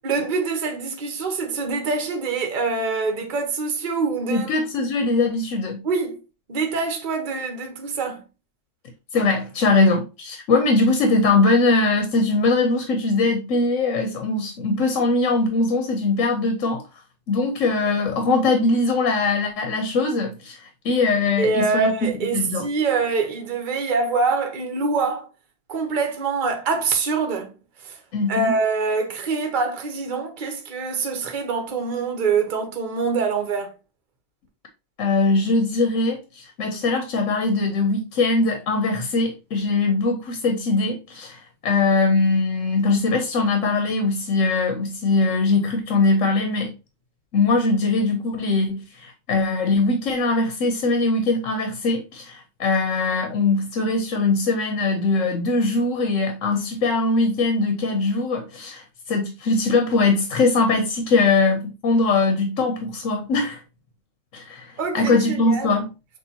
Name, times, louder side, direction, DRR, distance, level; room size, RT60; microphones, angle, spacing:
voice 1, 0.0-4.5 5.8-6.2 6.5-8.2 21.4-25.3 25.7-27.6 27.8-28.0 28.3-33.7 64.8-65.7, right 4 dB, 45° right, 0.9 m, -25 dB
voice 2, 4.3-5.8 9.1-16.8 17.3-21.9 22.3-22.7 28.1-28.6 35.0-46.7 47.3-63.6 64.3-65.9, left 3 dB, 85° left, 1.2 m, -21 dB
6.5 x 2.6 x 2.8 m
omnidirectional pair, 1.3 m